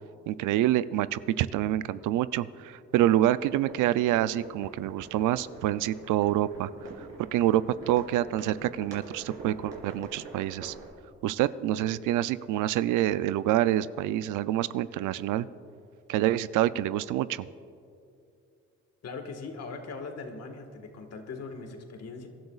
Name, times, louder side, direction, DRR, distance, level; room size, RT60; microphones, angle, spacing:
voice 1, 0.3-6.7 7.3-10.7 11.2-15.5 16.1-17.5, right 13 dB, 85° right, 15 dB, 0.5 m, -27 dB
sound 1, 2.9-10.9, right 3 dB, 55° right, 3.1 m, -46 dB
voice 2, 19.0-22.3, left 4 dB, 55° left, 5 dB, 1.7 m, -40 dB
25.5 x 12.0 x 2.4 m, 2.5 s
cardioid pair, 90°, 30 cm